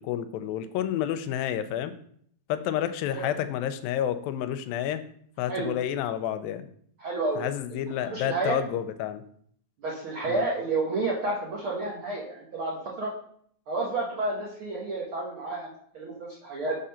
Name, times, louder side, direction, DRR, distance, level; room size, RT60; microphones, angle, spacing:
voice 1, 0.0-1.9 2.5-5.0 5.4-6.7 7.4-9.2 10.3-10.4, left 10 dB, 85° left, 11 dB, 2.3 m, -30 dB
voice 2, 7.0-7.4 7.7-8.6 9.8-13.1 13.7-16.8, right 2 dB, 70° right, -4 dB, 1.2 m, -30 dB
7.0 x 3.8 x 5.6 m, 0.64 s
omnidirectional pair, 4.1 m